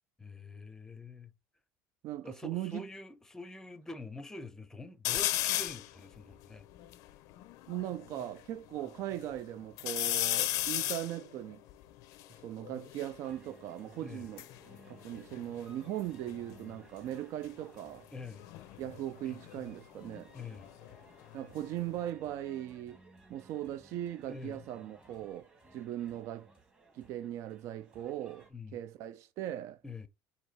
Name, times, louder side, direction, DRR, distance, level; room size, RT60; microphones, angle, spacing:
voice 1, 0.2-1.3 2.2-6.7 14.0-14.3 18.1-18.5 20.3-20.7 24.3-24.6 28.5-28.8 29.8-30.1, left 3 dB, 10° left, 0.6 m, -46 dB
voice 2, 2.0-2.9 7.7-11.6 12.4-14.4 14.9-18.1 18.8-20.3 21.3-23.0 23.3-26.5 26.9-29.8, right 12 dB, 50° right, 0.3 m, -39 dB
sound 1, 5.0-5.9 6.4-6.5 6.7-8.3 8.8-9.4 9.8-13.2 14.1-16.0 16.3-16.8 18.3-21.0 21.3-22.1, left 15 dB, 65° left, 0.5 m, -36 dB
sound 2, 13.2-28.5, right 2 dB, 15° right, 1.2 m, -60 dB
4.6 x 2.7 x 4.1 m
cardioid pair, 155°, 6 cm